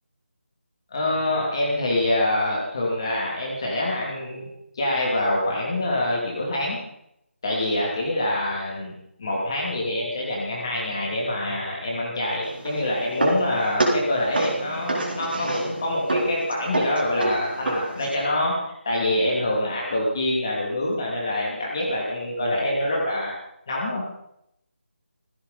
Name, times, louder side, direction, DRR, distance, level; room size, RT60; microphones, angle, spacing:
voice 1, 0.9-4.5 4.7-6.8 7.4-8.9 9.2-23.3 23.7-24.0, left 1 dB, 20° left, -3 dB, 2.7 m, -25 dB
sound 1, 12.4-18.2, right 2 dB, 50° right, 3.9 m, -28 dB
17.0 x 16.0 x 4.2 m, 0.77 s
figure-of-eight pair, 180°, 7 cm